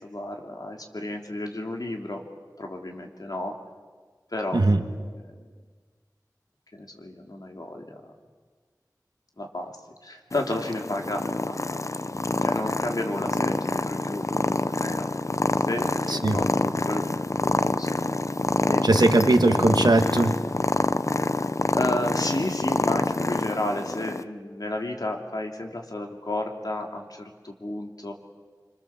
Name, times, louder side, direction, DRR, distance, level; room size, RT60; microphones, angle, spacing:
voice 1, 0.0-2.3 2.6-3.5 4.3-5.4 6.7-8.0 9.4-9.8 10.0-15.1 15.6-17.2 17.4-18.2 18.6-18.8 19.2-19.8 21.7-28.1, left 1 dB, 65° left, 2 dB, 3.0 m, -32 dB
Purr, 10.3-24.2, left 2 dB, 45° left, 0.7 m, -27 dB
voice 2, 18.8-20.4, right 2 dB, 80° right, 7 dB, 1.5 m, -20 dB
26.5 x 25.5 x 7.2 m, 1.5 s
wide cardioid pair, 50°, 7 cm